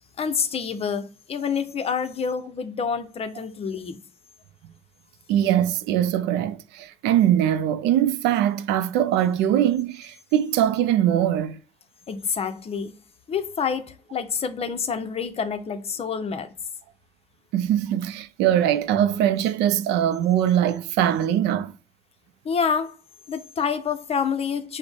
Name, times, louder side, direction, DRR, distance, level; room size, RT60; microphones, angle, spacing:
voice 1, 0.2-4.0 12.1-12.9 13.3-16.5 22.4-23.0 23.3-24.8, left 6 dB, 35° left, 0.6 m, -27 dB
voice 2, 5.3-11.6 17.5-21.7, right 11 dB, 90° right, 0.4 m, -22 dB
6.0 x 2.1 x 3.4 m
cardioid pair, 110°, 17 cm